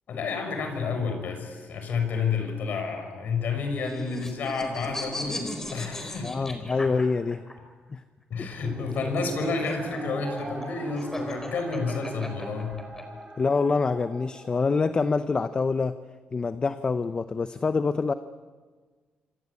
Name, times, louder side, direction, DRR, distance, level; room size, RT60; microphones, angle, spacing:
voice 1, 0.1-6.9 8.3-12.8, left 4 dB, 60° left, 5 dB, 6.4 m, -30 dB
sound 1, 3.5-7.5 8.8-13.0, left 1 dB, 15° left, 4.3 m, -37 dB
voice 2, 6.2-7.4 7.9-8.0 8.4-8.5 13.4-16.0 16.3-18.1, left 4 dB, 30° left, 11 dB, 0.8 m, -26 dB
sound 2, 8.5-15.0, right 2 dB, 20° right, 4.5 m, -41 dB
26.5 x 26.5 x 8.5 m, 1.4 s
cardioid pair, 120°, 3 cm